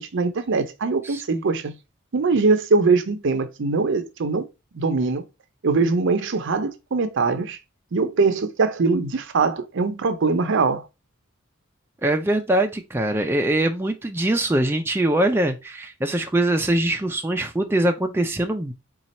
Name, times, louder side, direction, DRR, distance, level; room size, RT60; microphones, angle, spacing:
voice 1, 0.0-1.8 2.1-4.5 4.7-5.2 5.6-7.6 7.9-10.9, right 4 dB, 60° right, 0.6 m, -22 dB
voice 2, 1.0-1.4 12.0-18.7, right 1 dB, 10° right, 0.4 m, -22 dB
4.2 x 2.4 x 4.1 m
head